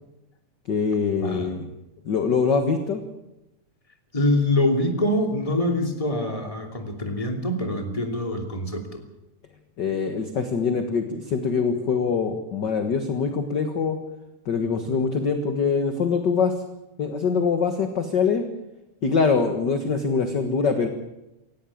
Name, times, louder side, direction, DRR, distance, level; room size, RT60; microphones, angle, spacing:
voice 1, 0.7-1.7 2.1-3.0 9.8-14.0 14.5-16.5 17.0-18.4 19.0-20.9, left 5 dB, 45° left, 7 dB, 1.6 m, -23 dB
voice 2, 1.2-1.5 4.1-8.8, left 1 dB, 10° left, 4 dB, 2.5 m, -24 dB
18.5 x 16.5 x 8.6 m, 0.94 s
omnidirectional pair, 3.6 m